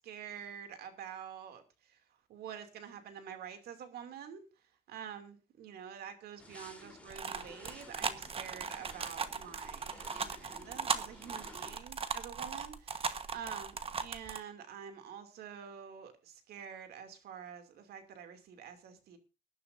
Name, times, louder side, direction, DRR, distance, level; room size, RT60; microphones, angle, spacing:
voice 1, 0.0-2.0 2.3-4.5 4.9-19.2, right 8 dB, 70° right, 7 dB, 2.6 m, -47 dB
sound 1, 6.4-11.8, left 2 dB, 10° left, 3.7 m, -54 dB
sound 2, 7.1-14.4, right 6 dB, 35° right, 1.3 m, -38 dB
21.5 x 11.0 x 2.6 m, 0.30 s
cardioid pair, 110°, 17 cm